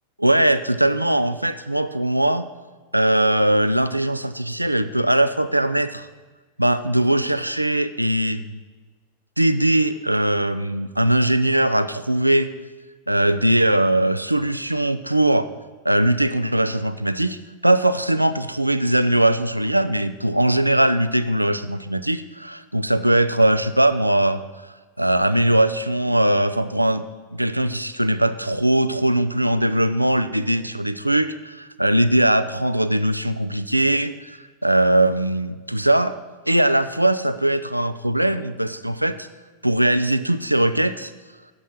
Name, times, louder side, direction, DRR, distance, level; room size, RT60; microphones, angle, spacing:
voice 1, 0.2-2.5 2.9-6.1 6.6-8.6 9.4-12.5 13.1-15.5 15.8-24.4 25.0-27.0 27.3-36.2 36.5-39.3 39.6-41.1, right 1 dB, 85° right, 12 dB, 0.3 m, -20 dB
8.7 x 7.5 x 5.4 m, 1.3 s
figure-of-eight pair, 90°, 0 cm